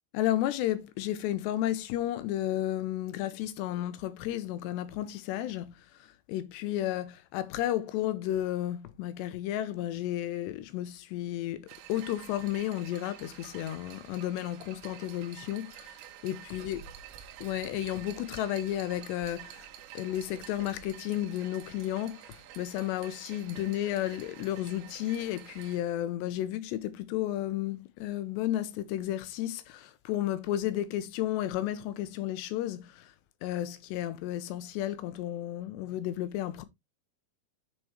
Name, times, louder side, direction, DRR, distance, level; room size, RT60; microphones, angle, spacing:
voice 1, 0.1-16.8 17.4-19.7 19.9-33.1 33.4-36.7, left 13 dB, 85° left, 3.0 m, -33 dB
sound 1, 11.7-25.8, right 11 dB, 90° right, 3.2 m, -49 dB
7.6 x 6.4 x 3.2 m
omnidirectional pair, 5.0 m